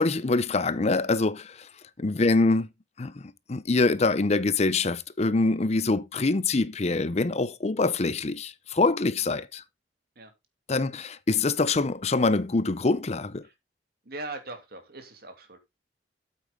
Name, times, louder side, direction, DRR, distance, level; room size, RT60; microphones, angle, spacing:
voice 1, 0.0-1.7 2.0-2.7 3.0-9.6 10.7-13.4, left 3 dB, 35° left, 0.6 m, -25 dB
voice 2, 14.0-15.6, right 2 dB, 60° right, 2.7 m, -40 dB
9.0 x 8.4 x 3.7 m
head